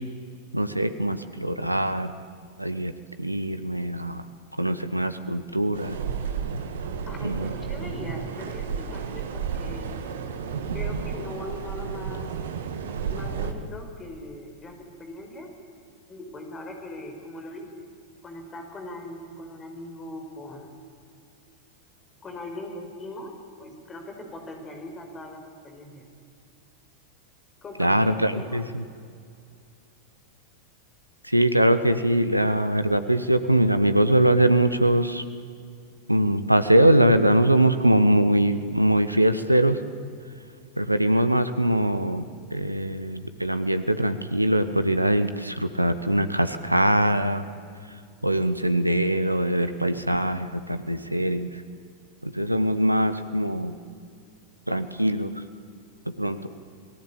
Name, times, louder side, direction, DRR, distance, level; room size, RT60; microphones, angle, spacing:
voice 1, 0.5-2.1 2.6-2.9 3.2-4.2 4.6-6.0 7.2-7.5 27.8-28.8 31.2-35.2 36.1-39.8 40.8-47.4 48.2-51.5 52.2-53.7 54.7-55.3 56.2-56.5, right 1 dB, 85° right, 11 dB, 1.3 m, -22 dB
sound 1, 5.7-13.5, right 6 dB, 60° right, 2.0 m, -32 dB
voice 2, 7.1-10.0 10.7-12.3 13.1-15.5 16.1-17.9 18.2-20.7 22.2-23.3 23.6-26.1 27.6-28.6, left 1 dB, 20° left, 4 dB, 5.4 m, -40 dB
28.0 x 19.0 x 8.8 m, 2.3 s
figure-of-eight pair, 90°, 0 cm